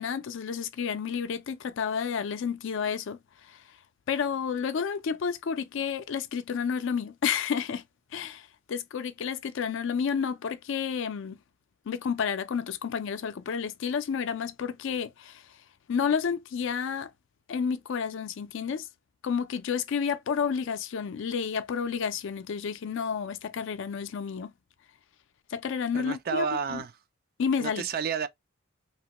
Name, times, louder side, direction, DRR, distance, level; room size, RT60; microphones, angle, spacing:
voice 1, 0.0-3.2 3.5-3.6 4.1-7.8 8.1-11.4 11.9-15.5 15.9-17.1 17.5-18.9 19.2-24.5 25.5-26.8 27.4-27.9, left 6 dB, 60° left, 0.4 m, -30 dB
voice 2, 25.9-26.9 27.6-28.3, right 6 dB, 45° right, 0.3 m, -30 dB
2.9 x 2.2 x 2.8 m
head